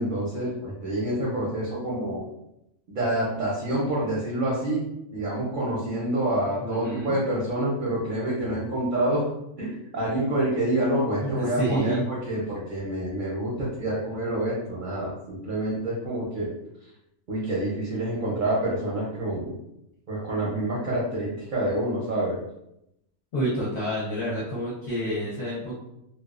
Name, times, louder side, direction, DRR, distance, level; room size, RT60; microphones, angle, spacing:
voice 1, 0.0-2.2 2.9-4.8 5.1-9.3 9.6-16.5 17.3-19.6 20.1-22.4, right 1 dB, 55° right, -5 dB, 0.6 m, -27 dB
voice 2, 6.6-7.1 11.2-12.0 23.3-25.8, right 1 dB, 60° left, -7 dB, 0.8 m, -28 dB
2.3 x 2.2 x 2.3 m, 0.83 s
omnidirectional pair, 1.4 m